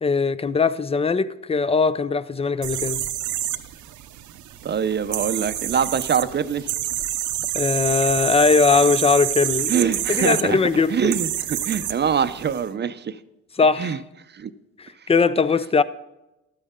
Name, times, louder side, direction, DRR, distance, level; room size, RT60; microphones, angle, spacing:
voice 1, 0.0-3.0 7.5-11.0 13.5-14.0 14.8-15.8, left 4 dB, 20° left, 0.4 m, -20 dB
sound 1, 2.6-12.6, right 12 dB, 75° right, 0.7 m, -28 dB
voice 2, 4.6-6.7 9.7-10.6 10.9-13.2 13.8-14.0 14.3-14.5, right 7 dB, 35° right, 0.6 m, -24 dB
12.0 x 8.9 x 3.6 m
cardioid pair, 90°, 30 cm